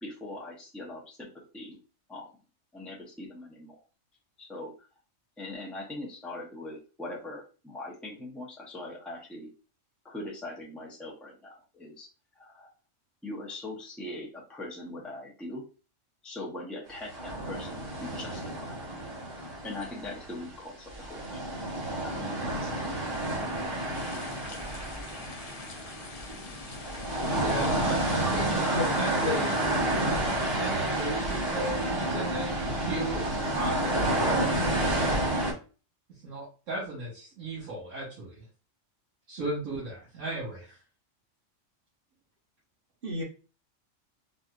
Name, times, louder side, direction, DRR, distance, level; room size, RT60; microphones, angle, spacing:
voice 1, 0.0-1.8 2.1-2.3 2.7-3.8 4.4-4.7 5.4-9.5 10.0-12.1 12.4-12.7 13.2-15.6 16.2-18.8 19.6-21.4 21.9-23.1, left 2 dB, ahead, -2 dB, 0.5 m, -41 dB
sound 1, 17.1-20.6 20.9-35.5, right 1 dB, 30° right, 1.3 m, -30 dB
sound 2, 23.9-30.5, left 4 dB, 75° left, 0.3 m, -44 dB
voice 2, 27.4-29.6 30.5-35.0 36.2-38.4 39.3-40.7, right 2 dB, 80° right, -6 dB, 1.6 m, -36 dB
voice 3, 28.1-28.9 29.2-29.4 43.0-43.2, left 2 dB, 50° right, -2 dB, 1.0 m, -33 dB
4.1 x 2.6 x 2.4 m, 0.35 s
omnidirectional pair, 1.3 m